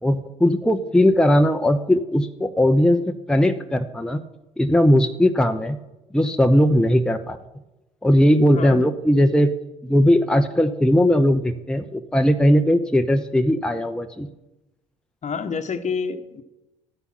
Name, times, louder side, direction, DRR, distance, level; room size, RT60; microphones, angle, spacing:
voice 1, 0.0-4.2 4.6-5.8 6.1-7.4 8.0-9.5 9.8-14.3, left 1 dB, 5° left, 6 dB, 0.9 m, -18 dB
voice 2, 8.4-8.8 15.2-16.4, left 5 dB, 40° left, 9 dB, 1.2 m, -28 dB
12.5 x 9.3 x 6.2 m, 0.98 s
hypercardioid pair, 55°, 19 cm